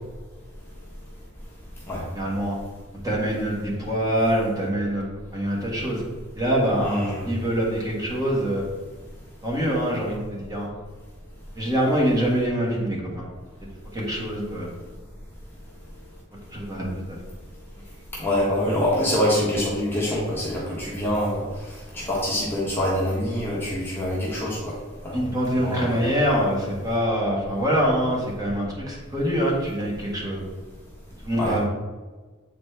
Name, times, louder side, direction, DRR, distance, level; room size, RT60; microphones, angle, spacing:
voice 1, 2.1-2.6 3.0-6.0 6.4-8.7 9.4-10.7 11.6-13.3 13.9-14.7 16.5-17.2 25.1-30.5 31.2-31.6, equal, 15° right, -4 dB, 1.5 m, -25 dB
voice 2, 6.9-7.3 18.2-21.4 21.9-24.7 25.0-25.2 25.6-26.0 31.4-31.6, left 1 dB, 10° left, -6 dB, 1.1 m, -25 dB
7.7 x 4.2 x 3.3 m, 1.3 s
head